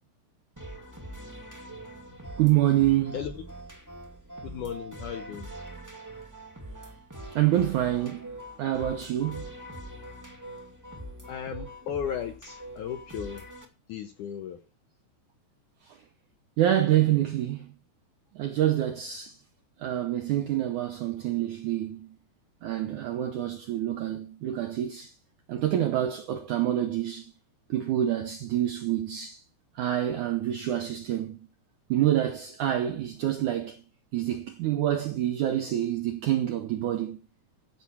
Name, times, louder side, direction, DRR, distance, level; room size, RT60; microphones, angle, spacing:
sound 1, 0.6-13.6, right 1 dB, 15° right, 0.6 m, -43 dB
voice 1, 2.4-3.1 7.4-8.3 8.6-9.5 15.9-16.0 16.6-17.7 18.4-19.4 19.8-22.1 22.6-25.1 25.5-27.3 27.7-29.4 29.8-31.4 31.9-33.8 34.1-37.2, right 12 dB, 80° right, 1.8 m, -27 dB
voice 2, 4.4-5.5 11.3-13.5 13.9-14.6, left 8 dB, 75° left, 1.9 m, -35 dB
15.0 x 6.0 x 7.1 m
omnidirectional pair, 4.7 m